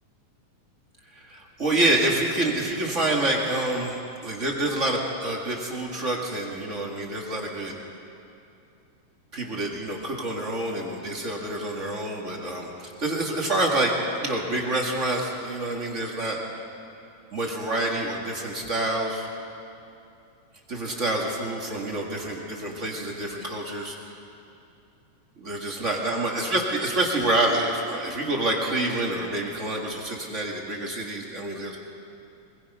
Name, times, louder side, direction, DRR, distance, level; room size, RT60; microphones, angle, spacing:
voice 1, 1.1-7.7 9.3-16.4 17.3-19.3 20.7-24.1 25.4-31.8, right 1 dB, 35° right, -1 dB, 1.3 m, -27 dB
22.5 x 20.5 x 5.5 m, 2.6 s
omnidirectional pair, 4.2 m